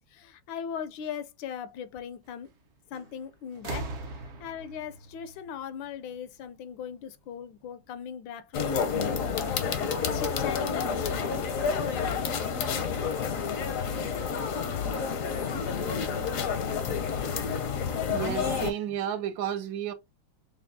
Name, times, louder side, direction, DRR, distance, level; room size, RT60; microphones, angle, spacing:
voice 1, 0.1-2.5 2.9-9.9 10.1-12.3 16.8-17.0, left 8 dB, 80° left, 1.3 m, -40 dB
sound 1, 2.9-3.2 3.5-6.3 7.4-7.5, right 2 dB, 60° right, 0.7 m, -40 dB
sound 2, 8.5-18.7, left 6 dB, 60° left, 0.8 m, -29 dB
voice 2, 18.1-19.9, right 10 dB, 75° right, 1.3 m, -32 dB
6.8 x 2.3 x 2.6 m
omnidirectional pair, 2.2 m